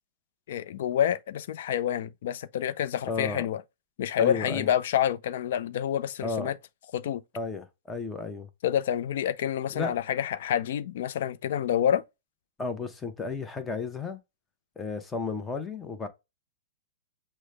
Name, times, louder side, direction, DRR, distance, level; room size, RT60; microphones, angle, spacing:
voice 1, 0.5-3.6 4.0-6.5 6.9-7.2 8.6-12.0, left 10 dB, 65° left, 0.5 m, -28 dB
voice 2, 3.1-3.5 4.2-4.7 6.2-6.5 7.3-8.5 9.7-9.9 12.6-14.2 14.8-16.1, left 4 dB, 15° left, 0.8 m, -33 dB
6.2 x 2.2 x 3.3 m
hypercardioid pair, 130°, 0 cm